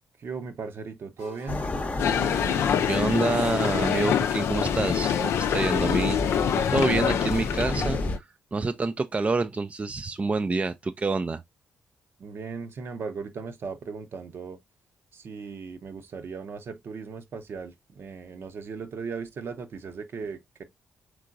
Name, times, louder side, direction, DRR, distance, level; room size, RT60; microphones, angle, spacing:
voice 1, 0.2-1.6 12.2-14.6 15.1-20.6, right 5 dB, 55° right, 0.7 m, -37 dB
sound 1, 1.2-6.8, left 1 dB, 90° right, 2.4 m, -46 dB
sound 2, 1.5-8.2, left 2 dB, 30° left, 0.7 m, -33 dB
sound 3, 2.0-8.2, left 8 dB, 65° left, 0.5 m, -25 dB
voice 2, 2.9-6.2 6.5-8.0 8.5-11.4, right 3 dB, 30° right, 0.4 m, -27 dB
4.6 x 3.7 x 2.5 m
hypercardioid pair, 45°, 5 cm